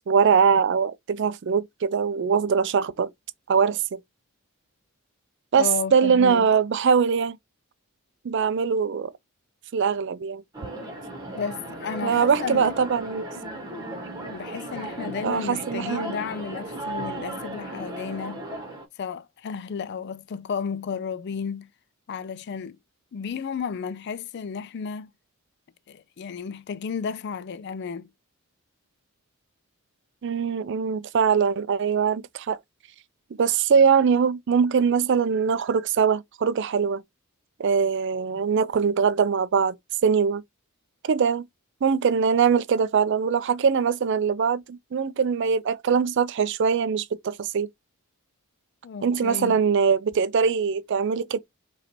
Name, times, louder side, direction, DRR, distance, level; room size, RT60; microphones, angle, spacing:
voice 1, 0.1-3.1 3.5-4.0 5.5-7.4 8.2-9.1 9.7-10.4 12.0-13.3 15.2-16.1 30.2-32.6 33.4-37.0 37.6-39.8 40.0-40.4 41.0-41.4 41.8-47.7 49.0-51.4, right 6 dB, 55° right, 0.4 m, -22 dB
voice 2, 5.6-6.5 11.4-12.7 14.2-18.4 19.0-21.7 22.1-22.8 23.1-25.1 25.9-28.1 48.8-49.6, left 6 dB, 50° left, 0.3 m, -33 dB
sound 1, 10.5-18.8, right 1 dB, 15° right, 1.4 m, -36 dB
4.9 x 3.2 x 2.9 m
head